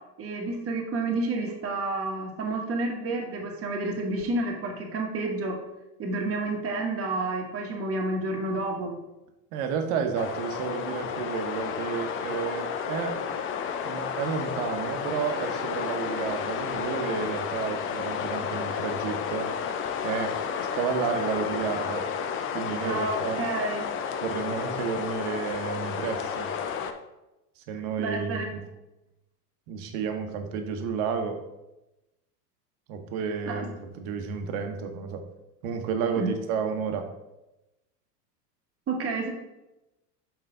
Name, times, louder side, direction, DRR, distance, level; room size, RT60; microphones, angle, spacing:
voice 1, 0.2-5.6 6.0-8.9 22.8-23.9 28.0-28.5 33.5-33.6 36.2-36.3 38.9-39.3, right 2 dB, 30° right, 1 dB, 1.3 m, -30 dB
voice 2, 9.5-13.3 13.8-19.5 20.0-22.1 22.5-23.4 24.2-26.5 27.6-28.6 29.7-31.4 32.9-35.2 35.6-37.1, right 6 dB, 55° right, 6 dB, 1.1 m, -31 dB
sound 1, 10.1-26.9, left 7 dB, 30° left, 0.4 m, -32 dB
5.7 x 4.9 x 3.8 m, 0.96 s
hypercardioid pair, 105°, 48 cm